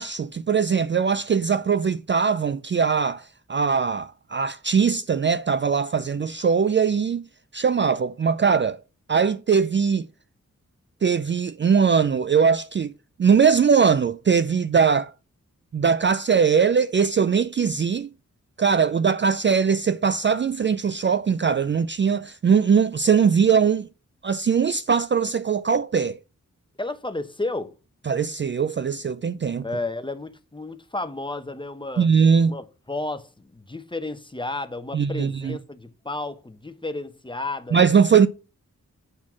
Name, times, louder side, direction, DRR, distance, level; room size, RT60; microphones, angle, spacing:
voice 1, 0.0-7.3 7.5-8.8 9.1-10.1 11.0-12.9 13.2-15.1 15.7-18.1 18.6-23.9 24.2-26.2 28.1-29.6 32.0-32.6 34.9-35.6 37.7-38.3, right 6 dB, 40° right, 0.4 m, -21 dB
voice 2, 26.8-27.7 29.6-32.1 32.5-37.8, left 2 dB, 15° left, 1.0 m, -32 dB
8.9 x 4.2 x 6.2 m
cardioid pair, 65°, 31 cm